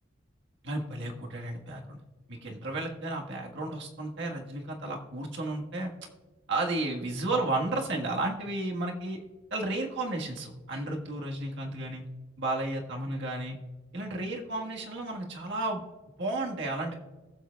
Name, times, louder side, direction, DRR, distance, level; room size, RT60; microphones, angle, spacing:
voice 1, 0.6-2.0 2.3-5.9 6.5-9.2 9.5-12.1 12.4-13.6 13.9-15.8 16.2-16.9, right 2 dB, 60° right, 1 dB, 1.5 m, -33 dB
20.5 x 7.4 x 2.3 m, 1.3 s
head